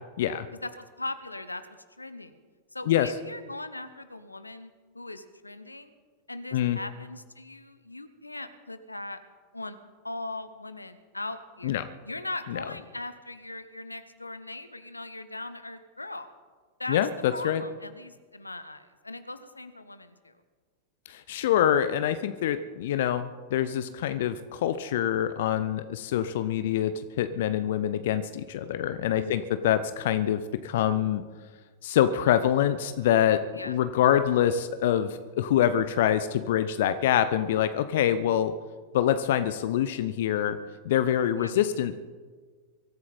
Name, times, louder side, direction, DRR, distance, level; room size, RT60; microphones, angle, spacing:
voice 1, 0.6-1.6 2.0-2.4 2.7-5.9 6.3-9.2 9.5-9.8 10.0-16.3 16.8-17.0 17.3-20.3 23.9-24.0 29.1-29.5 33.5-33.8 41.4-41.6, left 2 dB, 85° left, 12 dB, 1.0 m, -39 dB
voice 2, 16.9-17.6 21.1-31.2 31.8-38.5 38.9-40.6 40.8-42.0, left 10 dB, 55° left, 12 dB, 0.7 m, -25 dB
24.0 x 14.0 x 4.3 m, 1.5 s
figure-of-eight pair, 90°, 0 cm